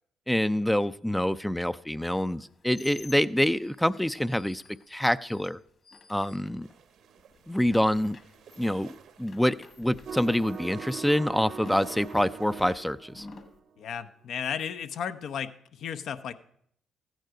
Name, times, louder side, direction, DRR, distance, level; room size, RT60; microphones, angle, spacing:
voice 1, 0.3-4.6 4.9-5.6 6.1-6.7 7.5-8.2 8.6-13.3, equal, 5° left, 14 dB, 0.4 m, -26 dB
sound 1, 2.3-6.9 7.2-13.6, left 3 dB, 45° left, 1.8 m, -51 dB
sound 2, 6.6-12.8, right 7 dB, 75° right, 1.0 m, -54 dB
sound 3, 10.1-13.9, right 6 dB, 55° right, 0.6 m, -41 dB
voice 2, 13.8-16.3, left 8 dB, 70° left, 12 dB, 0.7 m, -34 dB
14.0 x 9.2 x 4.9 m, 0.69 s
cardioid pair, 90°, 0 cm